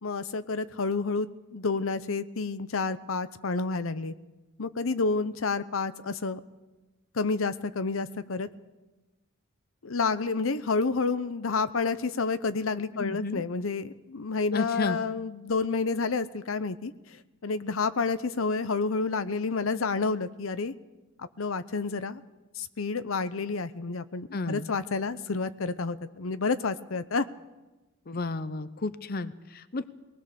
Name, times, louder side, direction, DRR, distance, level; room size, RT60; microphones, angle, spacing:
voice 1, 0.0-4.1 4.6-6.4 7.1-8.5 9.8-16.9 17.4-20.7 21.2-22.2 22.6-27.3, left 4 dB, 80° left, 13 dB, 0.8 m, -29 dB
voice 2, 12.9-13.4 14.5-15.0 24.3-24.7 28.1-29.9, left 3 dB, 45° left, 13 dB, 0.7 m, -32 dB
23.0 x 19.0 x 6.9 m, 1.1 s
head